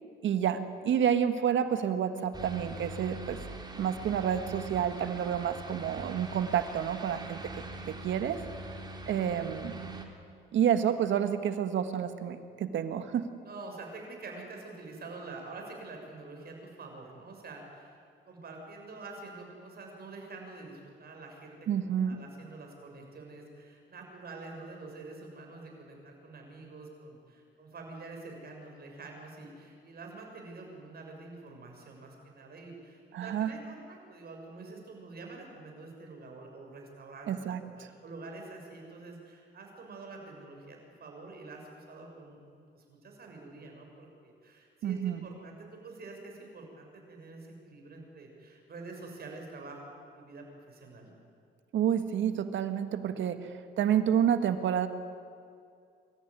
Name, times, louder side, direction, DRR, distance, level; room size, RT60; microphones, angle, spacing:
voice 1, 0.2-3.4 3.8-7.4 7.9-8.4 9.1-9.8 10.5-13.3 21.7-22.2 33.1-33.5 37.3-37.9 44.8-45.2 51.7-54.9, right 9 dB, 70° right, 9 dB, 1.7 m, -29 dB
sound 1, 2.3-10.1, right 2 dB, 20° right, 2.9 m, -43 dB
voice 2, 13.4-18.0 18.2-21.6 21.8-51.1, right 3 dB, 50° right, 1 dB, 6.7 m, -47 dB
25.5 x 14.5 x 9.8 m, 2.4 s
cardioid pair, 90°, 20 cm